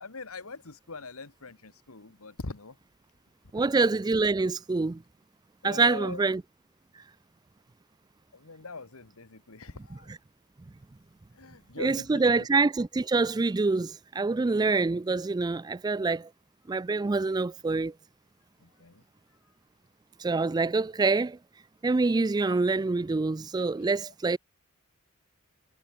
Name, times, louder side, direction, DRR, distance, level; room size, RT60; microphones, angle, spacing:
voice 1, 0.0-2.8 5.6-6.2 8.3-10.1 11.3-12.5 18.6-19.0, left 3 dB, 65° left, 1.6 m, -42 dB
voice 2, 3.5-5.0 5.6-6.4 10.1-10.2 11.8-16.3 16.7-17.9 20.2-21.4 21.8-24.4, right 3 dB, 20° right, 0.3 m, -26 dB
head